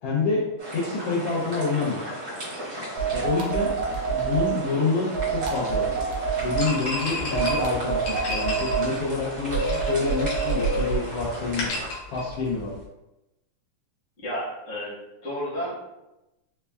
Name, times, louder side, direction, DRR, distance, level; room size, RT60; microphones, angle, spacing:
voice 1, 0.0-0.4 0.7-2.0 3.1-3.7 4.1-5.9 6.4-11.7 12.1-12.7, left 4 dB, 90° left, -7 dB, 1.3 m, -27 dB
sound 1, 0.6-11.9, equal, 55° right, 1.0 m, -37 dB
sound 2, 3.0-4.5 5.1-6.7 7.3-8.9 9.5-11.0, right 5 dB, 75° right, 1.5 m, -26 dB
sound 3, 6.6-12.8, left 2 dB, 70° left, 1.8 m, -34 dB
voice 2, 14.2-15.0 15.2-15.9, equal, 40° left, -9 dB, 0.9 m, -31 dB
5.5 x 2.2 x 2.2 m, 0.96 s
omnidirectional pair, 3.6 m